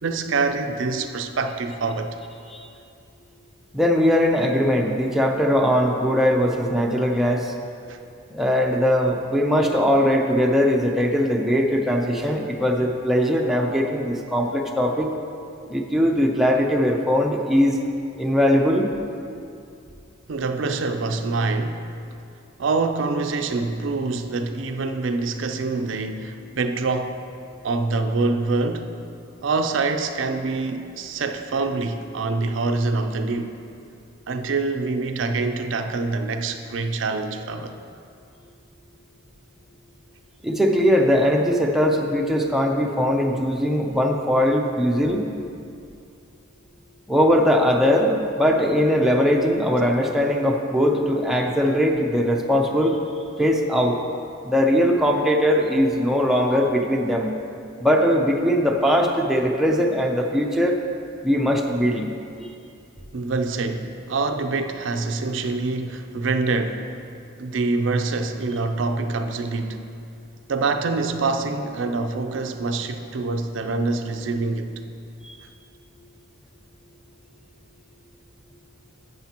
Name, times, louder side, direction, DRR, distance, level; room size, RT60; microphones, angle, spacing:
voice 1, 0.0-2.2 7.9-8.0 20.3-21.8 22.6-27.3 27.6-29.0 29.4-33.6 34.3-37.7 63.1-66.9 67.4-69.8 70.5-74.7, right 3 dB, 65° right, 7 dB, 0.5 m, -25 dB
voice 2, 3.7-7.5 8.3-15.1 15.7-17.8 18.2-18.9 40.4-45.3 47.1-53.0 53.4-54.0 54.4-57.3 57.8-60.8 61.2-62.1 62.4-62.5 75.2-75.4, equal, ahead, 0 dB, 0.5 m, -20 dB
11.5 x 8.0 x 2.9 m, 2.5 s
head